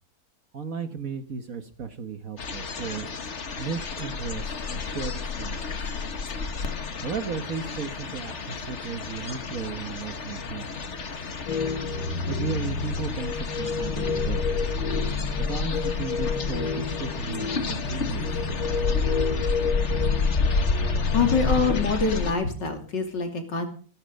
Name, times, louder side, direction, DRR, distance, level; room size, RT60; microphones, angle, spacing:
voice 1, 0.5-3.1 3.6-5.9 7.0-10.9 12.2-14.4 15.4-19.1, right 5 dB, 50° right, 9 dB, 1.4 m, -35 dB
sound 1, 2.4-22.3, left 4 dB, 40° left, 1.5 m, -30 dB
sound 2, 11.5-22.0, left 4 dB, 75° left, 2.0 m, -30 dB
voice 2, 21.1-23.7, left 4 dB, 60° left, 5 dB, 3.4 m, -25 dB
15.0 x 14.0 x 5.3 m, 0.43 s
omnidirectional pair, 2.2 m